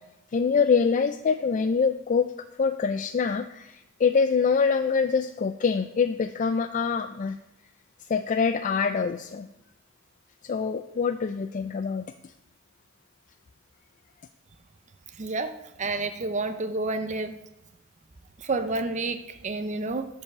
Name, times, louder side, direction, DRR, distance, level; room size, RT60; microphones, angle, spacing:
voice 1, 0.3-2.3 2.6-7.4 8.1-9.5 10.4-12.3, left 5 dB, 40° left, 9 dB, 0.4 m, -25 dB
voice 2, 15.2-15.5 15.8-17.4 18.4-20.1, right 3 dB, 35° right, 8 dB, 0.7 m, -29 dB
11.5 x 5.5 x 6.7 m, 0.92 s
head